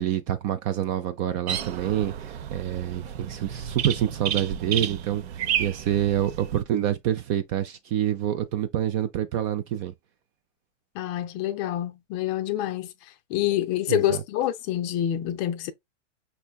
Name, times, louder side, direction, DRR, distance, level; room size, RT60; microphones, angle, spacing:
voice 1, 0.0-9.9 13.9-14.2, right 11 dB, 30° right, 0.4 m, -27 dB
sound 1, 1.5-6.6, right 9 dB, 60° right, 0.8 m, -32 dB
voice 2, 10.9-12.9 13.3-15.7, left 12 dB, 30° left, 0.5 m, -27 dB
5.6 x 3.3 x 2.3 m
hypercardioid pair, 135°, 36 cm